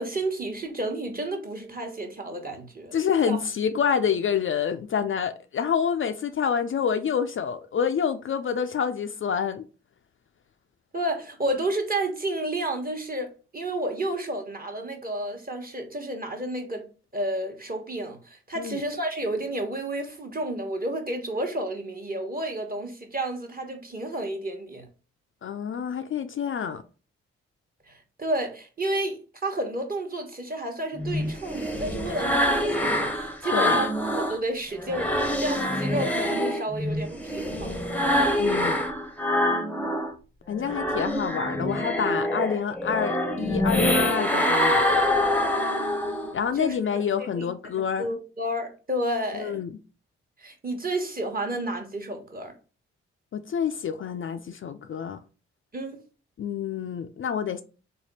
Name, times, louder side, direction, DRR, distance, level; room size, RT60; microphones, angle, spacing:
voice 1, 0.0-2.9 3.3-3.4 10.9-16.9 17.1-24.9 27.9-33.9 34.2-37.8 46.5-46.7 47.1-47.5 47.7-49.6 50.4-52.5 55.7-56.0, right 1 dB, 30° right, 1.2 m, -31 dB
voice 2, 2.9-9.7 18.6-18.8 25.4-26.8 33.5-33.8 38.4-38.8 40.5-45.1 46.3-48.1 49.3-49.7 53.3-55.2 56.4-57.6, left 7 dB, 45° left, 0.4 m, -27 dB
sound 1, 31.0-34.4 34.8-40.1 40.5-46.4, left 1 dB, 5° left, 0.8 m, -25 dB
3.4 x 2.2 x 4.1 m
supercardioid pair, 40°, 29 cm